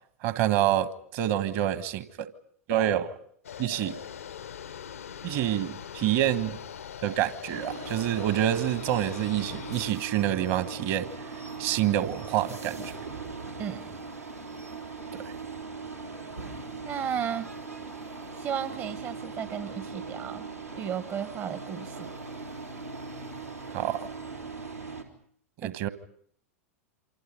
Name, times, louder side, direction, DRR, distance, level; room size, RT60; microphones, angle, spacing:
voice 1, 0.2-2.3 2.7-3.1 3.6-4.0 5.2-6.6 7.0-11.1 11.6-12.9 23.7-24.1 25.6-25.9, right 12 dB, 45° right, 1.5 m, -27 dB
sound 1, 3.4-9.9, left 8 dB, 70° left, 0.9 m, -42 dB
sound 2, 7.5-25.0, right 4 dB, 90° right, 3.6 m, -40 dB
voice 2, 16.8-17.5 18.4-20.4 20.8-22.1 25.6-25.8, right 8 dB, 30° right, 1.0 m, -34 dB
28.0 x 25.5 x 5.3 m
figure-of-eight pair, 90°, 8 cm